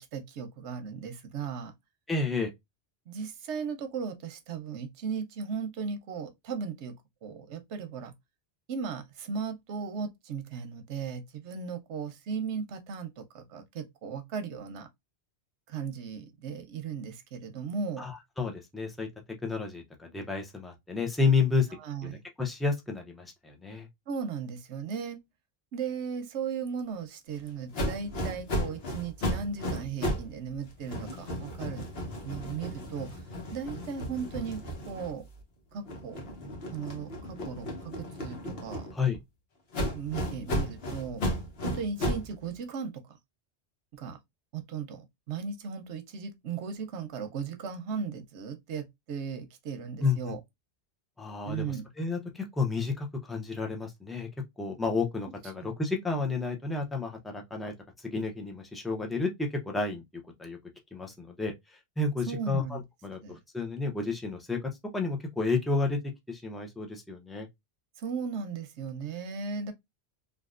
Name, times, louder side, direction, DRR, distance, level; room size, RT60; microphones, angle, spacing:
voice 1, 0.1-1.7 3.1-6.9 7.2-8.1 8.7-14.9 15.7-18.0 21.8-22.2 24.1-25.2 25.7-31.9 32.2-33.2 33.5-34.6 34.9-35.3 35.7-36.3 36.7-38.9 39.9-41.2 41.6-43.2 43.9-44.2 44.5-50.4 51.5-51.9 62.3-62.8 63.2-63.4 68.0-69.7, right 6 dB, 85° right, 1.0 m, -36 dB
voice 2, 2.1-2.5 18.0-19.1 19.4-21.7 22.0-23.9 38.9-39.2 50.0-50.3 51.2-54.3 54.6-57.7 58.0-60.0 60.4-60.6 60.9-66.0 66.3-67.5, left 4 dB, ahead, 0.3 m, -31 dB
sound 1, 27.7-30.3 30.6-35.4 35.8-39.2 39.7-42.3, equal, 60° left, 1.1 m, -34 dB
3.4 x 2.5 x 2.4 m
omnidirectional pair, 1.1 m